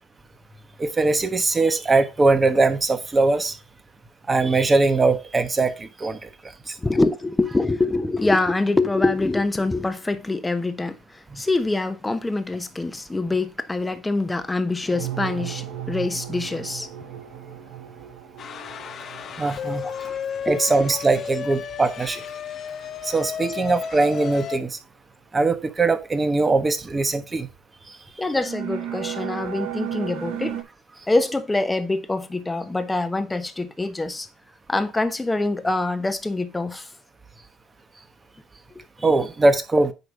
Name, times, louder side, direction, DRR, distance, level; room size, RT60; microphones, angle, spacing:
voice 1, 0.8-3.5 4.3-6.3 6.7-6.8 11.3-11.4 19.4-19.8 20.4-22.2 23.0-24.8 25.3-27.5 39.0-39.9, right 3 dB, 25° right, 1.2 m, -21 dB
voice 2, 6.8-11.0 11.4-16.9 19.8-20.1 20.5-20.6 28.2-30.6 31.1-34.3 34.7-36.9, left 2 dB, 15° left, 1.1 m, -24 dB
sound 1, 14.9-21.4 22.1-22.3 28.3-30.6, right 11 dB, 70° right, 2.0 m, -35 dB
sound 2, 18.4-24.6, left 8 dB, 50° left, 0.9 m, -33 dB
9.5 x 3.3 x 5.3 m
hypercardioid pair, 75°, 0 cm